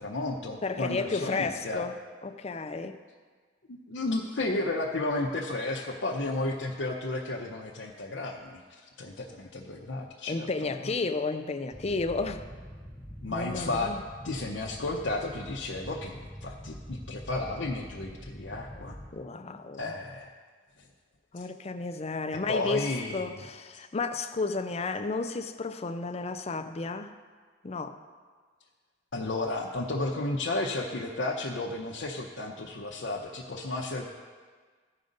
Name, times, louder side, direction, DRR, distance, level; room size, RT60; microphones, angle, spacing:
voice 1, 0.0-1.9 3.9-10.5 13.2-13.9 14.2-19.0 19.8-20.3 21.4-21.5 22.5-23.4 29.1-34.0, left 2 dB, 80° left, -2 dB, 0.8 m, -33 dB
voice 2, 0.6-2.0 2.2-3.0 10.3-12.4 13.3-14.0 19.1-20.0 21.3-27.1 27.6-28.0, left 3 dB, 35° left, 8 dB, 0.5 m, -32 dB
sound 1, 11.7-19.1, equal, 20° right, 2.6 m, -45 dB
15.0 x 5.2 x 4.0 m, 1.5 s
head